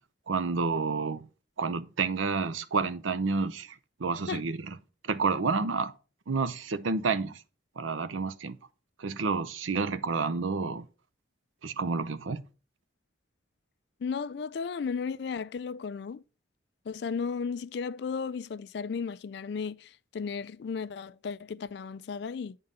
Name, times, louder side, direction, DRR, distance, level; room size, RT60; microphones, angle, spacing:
voice 1, 0.3-1.3 1.6-4.7 5.1-5.9 6.3-7.4 7.8-8.6 9.0-10.9 11.6-12.4, right 4 dB, 80° right, 0.6 m, -29 dB
voice 2, 14.0-16.2 16.9-22.6, left 5 dB, 55° left, 0.3 m, -34 dB
9.2 x 3.8 x 5.4 m
head